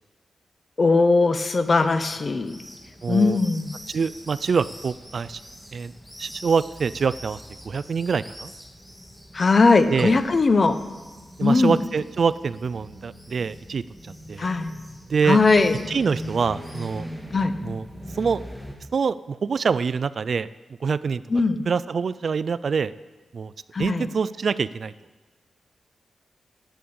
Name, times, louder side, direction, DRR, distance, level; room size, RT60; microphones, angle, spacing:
voice 1, 0.8-2.6 3.1-3.8 9.3-10.8 11.4-11.8 14.4-14.8 15.2-15.7 17.3-17.5 21.3-21.7 23.7-24.1, left 3 dB, 45° left, 11 dB, 0.9 m, -19 dB
sound 1, 1.6-18.7, equal, 5° left, 2.0 m, -42 dB
voice 2, 3.0-3.4 3.9-5.4 5.7-5.9 6.2-8.5 9.9-10.2 11.4-13.8 14.3-14.5 15.1-15.4 15.9-17.1 17.6-17.8 18.1-18.4 18.9-20.5 20.8-21.2 21.7-22.9 23.3-23.5 23.8-24.9, right 5 dB, 60° right, 17 dB, 0.4 m, -25 dB
11.0 x 8.4 x 8.6 m, 1.3 s
cardioid pair, 75°, 0 cm